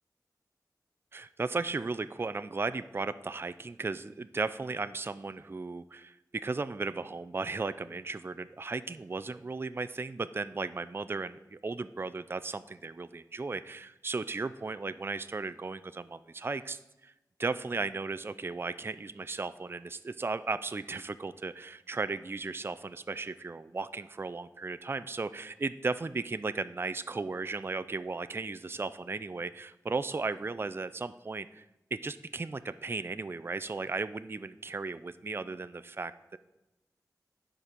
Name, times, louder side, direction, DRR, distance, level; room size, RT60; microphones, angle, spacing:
voice 1, 1.1-17.1 17.4-31.6 31.9-36.4, right 3 dB, 35° right, 13 dB, 0.4 m, -36 dB
9.7 x 5.1 x 6.1 m, 0.96 s
wide cardioid pair, 60°, 7 cm